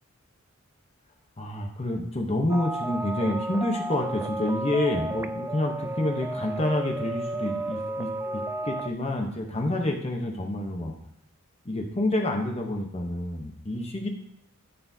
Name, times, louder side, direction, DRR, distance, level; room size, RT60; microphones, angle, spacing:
voice 1, 1.4-10.9 11.6-14.1, left 1 dB, 30° left, 2 dB, 0.9 m, -28 dB
sound 1, 2.5-8.9, right 2 dB, 10° right, 0.3 m, -33 dB
12.5 x 6.8 x 2.7 m, 0.74 s
head